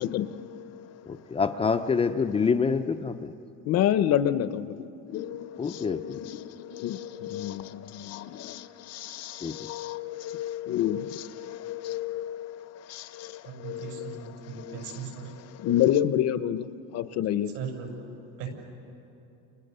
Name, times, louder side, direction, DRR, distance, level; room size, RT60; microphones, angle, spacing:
voice 1, 0.0-0.9 3.6-14.8 15.6-16.7 16.9-17.5, left 11 dB, 50° left, 13 dB, 0.9 m, -30 dB
voice 2, 1.0-3.3 5.6-6.2 9.4-9.6, left 5 dB, 15° left, 8 dB, 0.6 m, -26 dB
voice 3, 13.4-15.3 17.5-17.9 18.4-18.5, right 6 dB, 75° right, 2 dB, 7.1 m, -38 dB
30.0 x 29.5 x 6.8 m, 2.8 s
cardioid pair, 150°, 33 cm